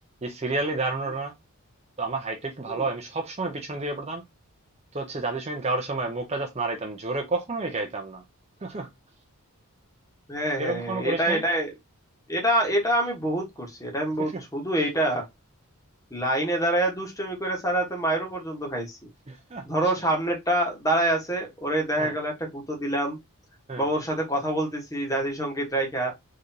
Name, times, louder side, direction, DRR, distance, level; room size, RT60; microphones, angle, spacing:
voice 1, 0.2-1.3 2.0-4.2 4.9-8.2 8.6-8.9 10.6-11.4 14.3-14.4 19.3-19.6 22.0-22.1 23.7-23.9, right 3 dB, 30° right, 0.7 m, -30 dB
voice 2, 10.3-11.7 12.3-15.2 16.1-19.0 19.6-23.2 23.8-26.1, right 1 dB, 15° left, 1.2 m, -26 dB
3.8 x 3.3 x 2.7 m
head